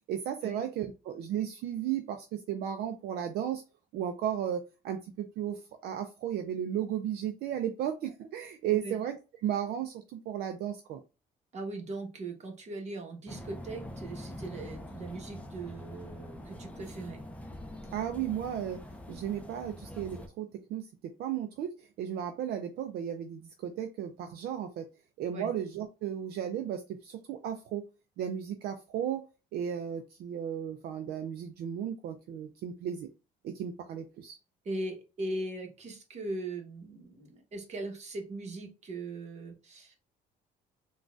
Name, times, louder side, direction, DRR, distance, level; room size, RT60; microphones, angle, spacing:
voice 1, 0.1-3.6 3.9-9.2 9.4-11.0 17.9-24.9 25.2-27.8 28.2-29.3 29.5-33.1 33.4-34.4, right 9 dB, 70° right, 0.4 m, -35 dB
voice 2, 11.5-17.2 25.3-25.5 34.6-40.0, right 2 dB, 40° right, 1.1 m, -39 dB
sound 1, 13.3-20.3, left 1 dB, 10° left, 0.5 m, -44 dB
3.8 x 2.3 x 2.4 m
cardioid pair, 110°, 17 cm